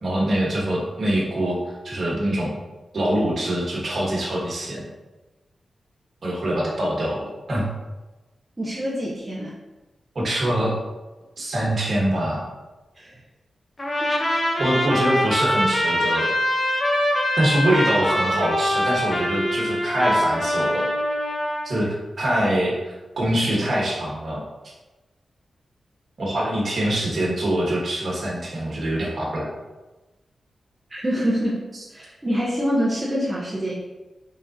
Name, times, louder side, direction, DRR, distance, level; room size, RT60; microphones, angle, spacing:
voice 1, 0.0-2.5 2.9-4.8 6.2-7.2 7.5-7.6 10.1-10.7 11.4-12.5 14.6-16.3 17.4-20.9 21.6-24.4 26.2-29.5 31.7-31.8, right 1 dB, 60° right, -4 dB, 1.4 m, -24 dB
voice 2, 8.6-9.6 13.0-13.1 14.0-14.3 30.9-31.6 31.9-33.7, equal, 25° right, -7 dB, 1.0 m, -25 dB
Trumpet, 13.8-21.7, equal, 35° left, 0.8 m, -23 dB
4.0 x 3.6 x 2.8 m, 1.1 s
cardioid pair, 55°, 0 cm